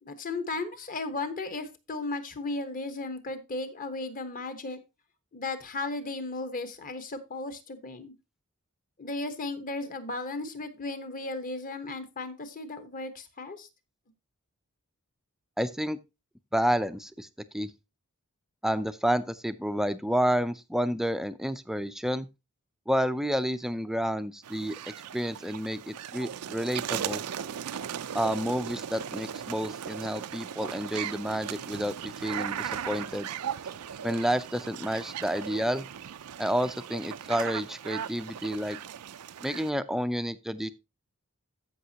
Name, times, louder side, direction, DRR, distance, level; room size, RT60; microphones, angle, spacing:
voice 1, 0.0-4.8 5.3-8.1 9.0-13.7, left 3 dB, 40° left, 9 dB, 1.2 m, -35 dB
voice 2, 15.6-16.0 16.5-17.3 17.5-17.7 18.6-22.3 22.9-24.8 25.1-27.2 28.1-33.3 34.0-35.9 36.4-38.8 39.4-40.7, equal, ahead, 12 dB, 0.4 m, -30 dB
sound 1, 24.4-39.7, right 9 dB, 85° right, 0.5 m, -37 dB
14.0 x 5.9 x 2.8 m, 0.25 s
head